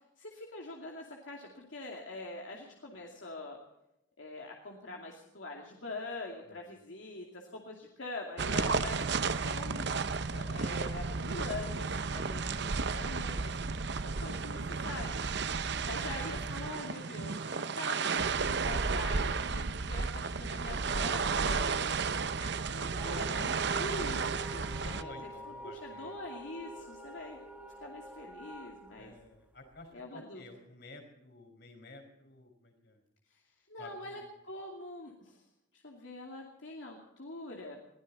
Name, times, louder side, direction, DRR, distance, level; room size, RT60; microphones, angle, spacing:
voice 1, 0.2-3.6 4.2-9.8 10.3-15.2 15.8-22.0 22.7-27.4 27.8-29.1 29.9-30.4 33.3-33.4 33.7-34.2 34.5-35.4 35.7-37.8, left 2 dB, 80° left, 0 dB, 2.5 m, -44 dB
sound 1, 8.4-25.0, right 4 dB, 60° right, 0.8 m, -33 dB
voice 2, 22.2-22.5 24.8-26.2 29.0-33.0 33.8-34.2, left 2 dB, 60° left, 5 dB, 4.7 m, -52 dB
sound 2, 22.9-29.9, right 1 dB, 5° right, 1.1 m, -47 dB
22.0 x 16.0 x 4.2 m, 0.87 s
head